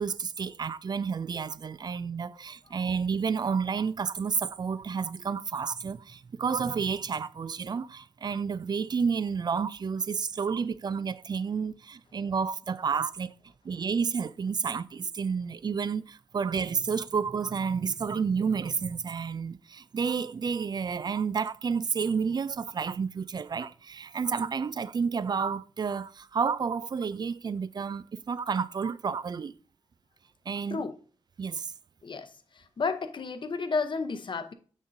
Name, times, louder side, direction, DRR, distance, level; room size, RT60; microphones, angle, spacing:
voice 1, 0.0-13.3 13.6-29.5 30.5-30.8 31.4-31.7, right 6 dB, 40° right, 0.3 m, -30 dB
voice 2, 32.0-34.5, left 4 dB, 50° left, 0.7 m, -32 dB
7.0 x 6.2 x 2.6 m
wide cardioid pair, 100°, 11 cm